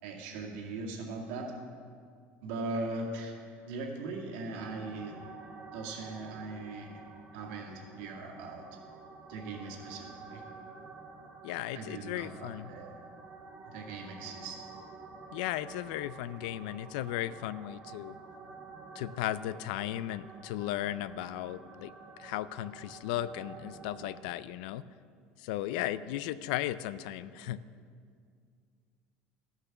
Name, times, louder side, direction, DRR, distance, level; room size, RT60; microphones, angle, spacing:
voice 1, 0.0-1.5 2.4-3.4 3.7-5.2 5.7-7.0 7.3-8.6 9.3-10.4 11.8-13.0 13.6-14.6, right 3 dB, 90° right, 0 dB, 2.0 m, -39 dB
sound 1, 4.6-24.2, right 4 dB, 25° right, 1.2 m, -50 dB
voice 2, 11.4-12.7 15.3-18.2 18.9-24.9 25.4-27.6, left 13 dB, 90° left, 16 dB, 0.4 m, -36 dB
13.5 x 6.8 x 5.9 m, 2.2 s
cardioid pair, 150°, 4 cm